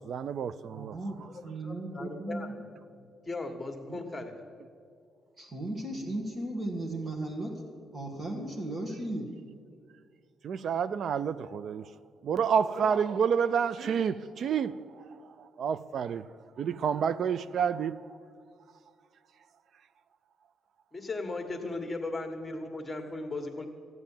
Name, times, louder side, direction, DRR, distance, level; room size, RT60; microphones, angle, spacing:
voice 1, 0.0-1.3 10.4-11.9 12.2-16.3 16.6-18.0 21.6-21.8, right 7 dB, 60° right, 0.4 m, -29 dB
voice 2, 0.6-1.2 1.4-2.6 3.9-4.0 5.4-7.6 7.9-9.3, right 1 dB, 40° right, 1.8 m, -36 dB
voice 3, 1.6-2.7 3.2-4.4 20.9-23.7, left 2 dB, 20° left, 1.7 m, -37 dB
13.5 x 9.3 x 7.4 m
cardioid pair, 90°, 0 cm